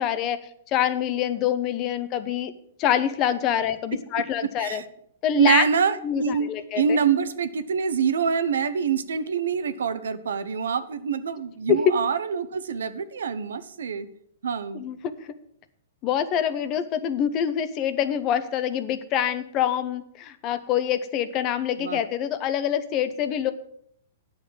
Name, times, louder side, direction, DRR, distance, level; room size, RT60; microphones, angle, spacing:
voice 1, 0.0-2.5 2.8-4.8 5.2-5.6 6.0-6.8 11.7-11.9 14.7-15.3 16.0-23.5, left 9 dB, 30° left, 13 dB, 0.9 m, -25 dB
voice 2, 5.3-6.5 6.7-14.1 14.4-14.9 21.8-22.0, right 6 dB, 85° right, 12 dB, 0.9 m, -25 dB
9.5 x 6.6 x 7.7 m, 0.70 s
hypercardioid pair, 145°, 0 cm